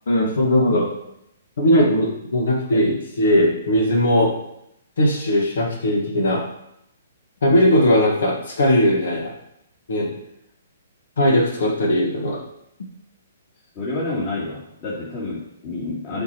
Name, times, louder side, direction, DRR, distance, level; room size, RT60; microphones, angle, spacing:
voice 1, 0.1-0.9 1.6-4.4 5.0-6.4 7.4-9.3 9.9-10.1 11.2-12.4, equal, 60° left, 0 dB, 1.6 m, -19 dB
voice 2, 13.7-16.2, left 2 dB, 30° left, -9 dB, 3.0 m, -28 dB
13.0 x 5.7 x 3.0 m, 0.80 s
figure-of-eight pair, 120°, 0 cm